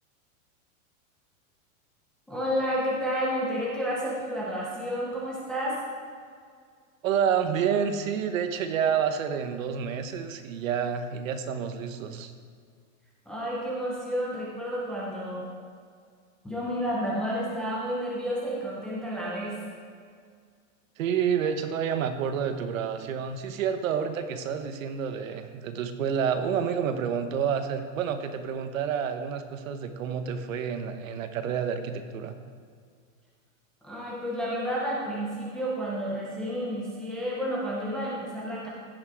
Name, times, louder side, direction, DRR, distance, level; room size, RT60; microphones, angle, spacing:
voice 1, 2.3-5.8 13.3-15.5 16.4-19.6 33.8-38.7, equal, ahead, -6 dB, 0.4 m, -30 dB
voice 2, 7.0-12.3 21.0-32.3, right 7 dB, 70° right, 8 dB, 1.2 m, -29 dB
15.5 x 6.2 x 4.6 m, 2.1 s
supercardioid pair, 175°, 41 cm